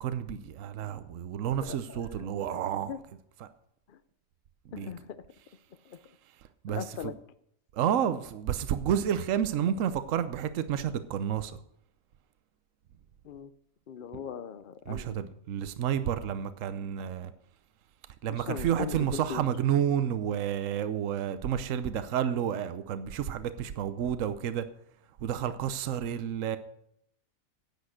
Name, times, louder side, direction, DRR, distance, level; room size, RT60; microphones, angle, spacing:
voice 1, 0.0-2.9 3.4-3.5 4.6-4.9 6.4-7.1 7.7-11.6 14.9-17.3 18.2-24.7 25.2-26.6, right 9 dB, 75° right, 1.1 m, -30 dB
voice 2, 1.6-3.0 3.9-4.0 4.7-5.2 5.9-6.0 6.7-7.1 13.2-13.5 13.9-15.2 18.3-19.4, left 8 dB, 55° left, 0.6 m, -40 dB
10.5 x 8.2 x 6.4 m
omnidirectional pair, 1.4 m